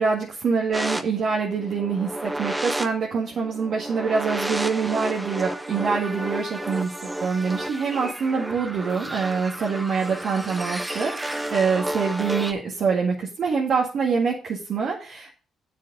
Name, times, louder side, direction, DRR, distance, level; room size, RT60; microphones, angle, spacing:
voice 1, 0.0-15.3, right 5 dB, 60° right, -2 dB, 1.8 m, -25 dB
sound 1, 0.7-12.5, right 1 dB, 10° right, 0.9 m, -31 dB
7.2 x 6.3 x 5.4 m, 0.37 s
cardioid pair, 90°, 0 cm